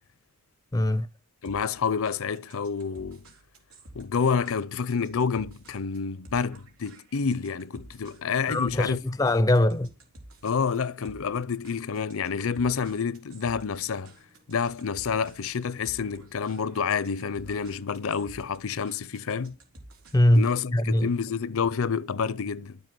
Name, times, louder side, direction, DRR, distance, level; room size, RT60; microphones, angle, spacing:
voice 1, 0.7-1.1 8.5-9.9 20.1-20.4 20.7-21.1, left 1 dB, 15° left, 0.5 m, -21 dB
voice 2, 1.4-3.2 3.9-9.0 10.4-14.1 14.5-19.6 20.4-22.8, left 6 dB, 70° left, 0.6 m, -28 dB
sound 1, 1.4-20.5, right 1 dB, 90° right, 3.6 m, -52 dB
12.0 x 7.6 x 7.7 m
head